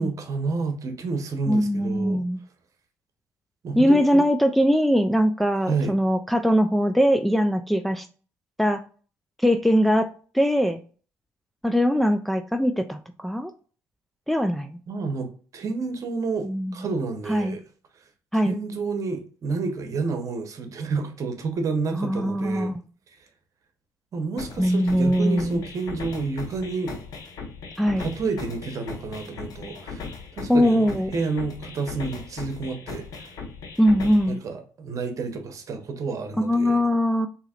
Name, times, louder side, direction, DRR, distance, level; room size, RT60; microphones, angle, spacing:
voice 1, 0.0-2.2 3.6-4.2 5.6-5.9 14.9-15.3 15.5-17.6 18.3-22.7 24.1-26.9 28.0-30.1 30.4-33.3 34.3-36.8, right 4 dB, 50° right, 1.0 m, -30 dB
voice 2, 1.5-2.4 3.8-8.1 8.6-8.8 9.4-10.1 10.3-10.8 11.6-13.5 14.3-14.8 16.4-16.7 17.3-17.6 18.3-18.5 22.0-22.8 24.6-25.6 27.8-28.0 30.5-31.1 33.8-34.4 36.4-37.3, equal, ahead, 0.3 m, -21 dB
sound 1, 24.4-34.4, left 4 dB, 60° left, 1.1 m, -38 dB
4.0 x 2.8 x 2.4 m
supercardioid pair, 80°, 7 cm